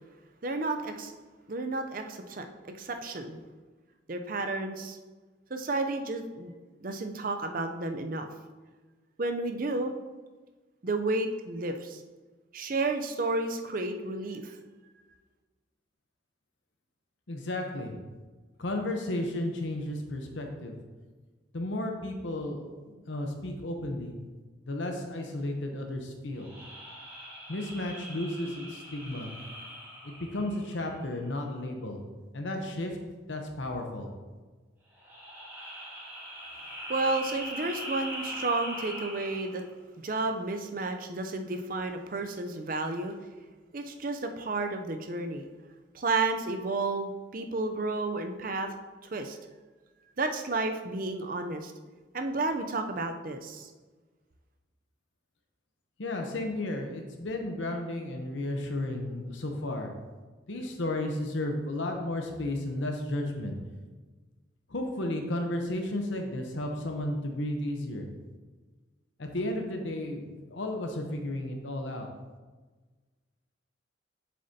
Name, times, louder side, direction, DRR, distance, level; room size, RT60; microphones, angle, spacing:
voice 1, 0.4-1.1 1.5-3.4 4.1-5.0 5.5-6.5 6.8-8.3 9.2-9.9 10.8-12.0 12.5-14.6 36.9-39.6 40.0-43.1 43.7-45.4 45.9-48.7 49.0-49.4 50.2-51.7 52.1-53.7, right 3 dB, 45° right, 6 dB, 0.5 m, -31 dB
voice 2, 17.3-17.9 18.6-20.7 21.5-24.2 24.7-26.5 27.5-29.3 30.0-32.0 32.3-33.0 33.3-34.1 56.0-59.9 60.5-63.6 64.7-68.1 69.2-72.1, left 1 dB, 75° left, 3 dB, 0.8 m, -33 dB
sound 1, 26.3-31.1 34.9-39.7, equal, 10° right, 1.7 m, -42 dB
7.7 x 6.6 x 2.8 m, 1.3 s
head